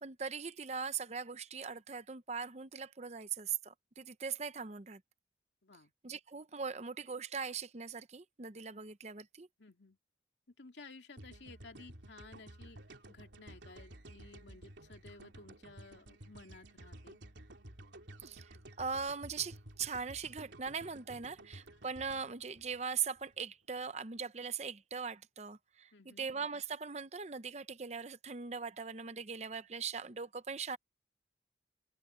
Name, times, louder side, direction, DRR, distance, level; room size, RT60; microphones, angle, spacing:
voice 1, 0.0-5.0 6.0-9.5 18.2-30.8, right 6 dB, 35° right, 0.7 m, -40 dB
voice 2, 5.6-5.9 9.6-10.0 10.6-12.8 13.1-17.2 25.9-26.3, left 3 dB, 75° left, 2.4 m, -55 dB
sound 1, 11.2-23.4, right 1 dB, 80° right, 3.1 m, -53 dB
head